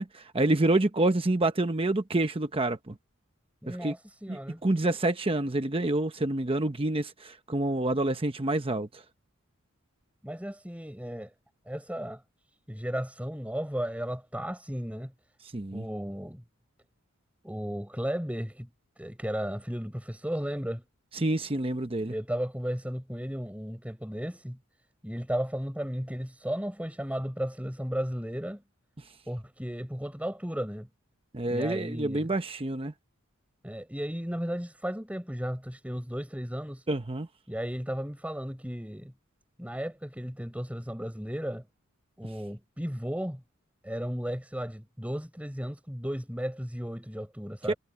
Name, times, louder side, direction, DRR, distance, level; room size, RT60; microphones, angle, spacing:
voice 1, 0.0-3.0 3.7-3.9 4.3-9.0 15.5-15.8 21.1-22.1 31.3-32.9 36.9-37.3 47.7-47.8, right 2 dB, 25° right, 0.9 m, -28 dB
voice 2, 3.6-4.6 10.2-11.3 11.6-12.2 12.7-15.1 15.7-16.4 17.4-18.7 19.0-20.8 22.0-24.6 25.0-28.6 29.3-30.9 31.5-32.3 33.6-36.8 37.5-39.1 39.6-41.7 42.2-43.4 43.8-47.8, equal, 5° right, 5.3 m, -34 dB
head